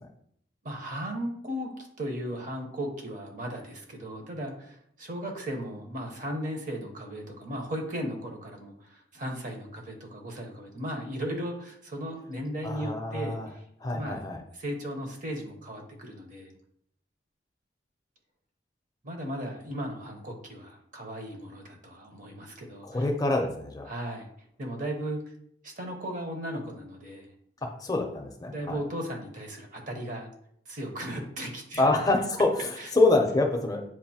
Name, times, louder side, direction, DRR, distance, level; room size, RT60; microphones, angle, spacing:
voice 1, 0.6-1.7 2.0-14.3 14.5-16.5 19.0-23.1 23.9-24.3 24.6-25.2 25.6-27.3 28.5-30.3 30.7-31.9 32.8-32.9, equal, 45° right, 2 dB, 0.8 m, -36 dB
voice 2, 12.6-13.5 13.8-14.4 22.8-23.9 27.6-28.8 31.8-33.8, left 2 dB, 20° left, 3 dB, 0.5 m, -26 dB
7.3 x 2.5 x 2.8 m, 0.68 s
head